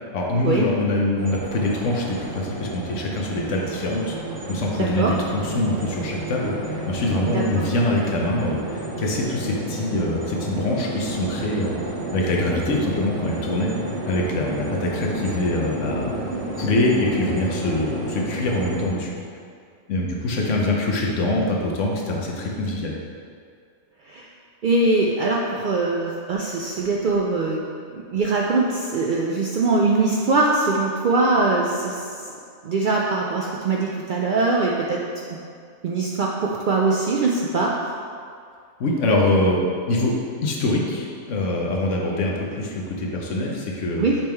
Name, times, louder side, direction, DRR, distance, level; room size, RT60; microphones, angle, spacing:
voice 1, 0.1-4.1 4.5-11.7 12.1-13.7 14.1-16.1 16.5-19.1 19.9-23.0 38.8-40.1 40.4-44.0, left 2 dB, 75° left, -1 dB, 1.2 m, -24 dB
sound 1, 1.2-18.9, right 1 dB, 90° right, 1.3 m, -31 dB
voice 2, 24.6-27.6 27.9-32.0 32.6-35.4 35.8-37.7 44.0-44.2, right 3 dB, 65° right, -3 dB, 0.5 m, -22 dB
5.8 x 3.6 x 4.4 m, 2.2 s
omnidirectional pair, 1.3 m